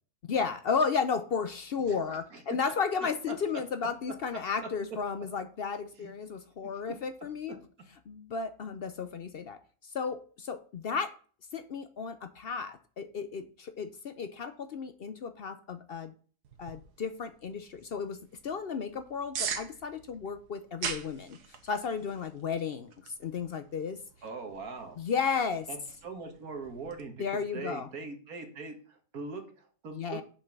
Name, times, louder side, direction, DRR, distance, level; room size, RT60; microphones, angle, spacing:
voice 1, 0.3-7.6 8.1-11.1 11.5-16.1 16.6-18.2 18.4-21.4 21.6-24.0 25.0-25.7 27.2-27.9 29.9-30.2, left 5 dB, 60° left, 10 dB, 0.6 m, -33 dB
voice 2, 1.8-2.4 3.3-3.6 4.6-4.7 6.0-6.1 6.6-6.7 24.2-25.0 25.7-30.2, right 4 dB, 65° right, 4 dB, 2.1 m, -42 dB
sound 1, 16.4-27.0, right 7 dB, 80° right, 1.6 m, -43 dB
7.1 x 5.4 x 5.9 m, 0.42 s
omnidirectional pair, 1.7 m